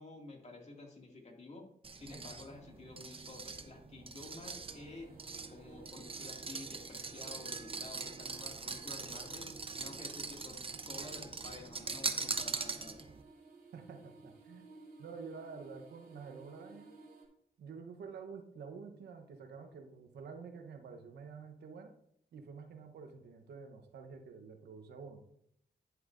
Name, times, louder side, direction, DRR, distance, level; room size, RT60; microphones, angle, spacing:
voice 1, 0.0-1.6 1.9-5.1 5.5-9.5 9.8-13.0, left 3 dB, 40° left, 1 dB, 2.3 m, -51 dB
sound 1, 1.8-13.2, right 4 dB, 35° right, 0.8 m, -42 dB
sound 2, 4.2-17.3, right 3 dB, 65° right, 3.0 m, -56 dB
voice 2, 13.7-14.7 15.0-16.9 17.6-21.9 22.3-25.2, right 5 dB, 85° right, 6 dB, 1.0 m, -49 dB
10.0 x 7.9 x 2.6 m, 0.72 s
cardioid pair, 60°, 17 cm